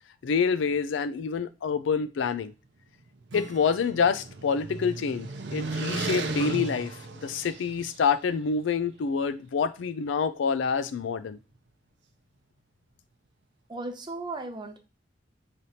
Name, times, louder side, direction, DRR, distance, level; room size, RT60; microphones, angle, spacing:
voice 1, 0.2-2.5 3.3-11.4, left 6 dB, 85° left, 0.4 m, -27 dB
sound 1, 3.2-8.0, right 3 dB, 70° right, 0.6 m, -35 dB
Acoustic guitar / Strum, 3.3-7.6, right 1 dB, 90° right, 1.0 m, -51 dB
voice 2, 13.7-14.8, right 2 dB, 25° right, 0.6 m, -36 dB
4.1 x 3.3 x 2.7 m
head